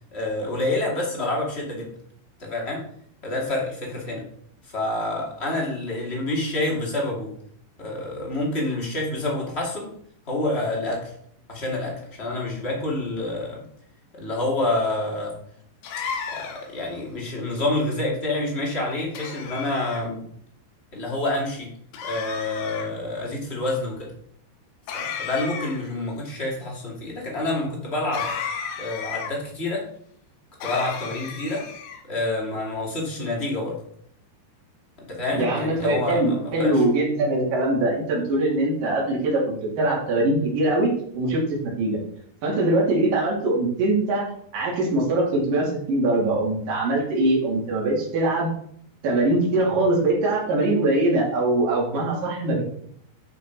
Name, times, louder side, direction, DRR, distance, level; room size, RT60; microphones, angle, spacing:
voice 1, 0.1-1.9 2.4-2.8 3.2-4.2 4.7-7.3 7.8-9.9 10.3-11.1 11.5-13.6 14.1-15.4 16.3-20.2 20.9-21.7 22.0-24.1 24.9-28.3 28.8-29.9 30.6-31.7 32.0-33.8 35.0-36.8, left 2 dB, 20° left, -2 dB, 1.8 m, -28 dB
sound 1, 15.8-16.8 19.2-20.0 21.9-22.9 24.9-25.9 28.1-29.3 30.6-32.0, left 6 dB, 85° left, 3.5 m, -33 dB
voice 2, 35.3-42.0 42.4-48.5 49.0-52.6, right 2 dB, 55° right, -3 dB, 4.5 m, -22 dB
10.5 x 6.6 x 4.6 m, 0.63 s
omnidirectional pair, 4.9 m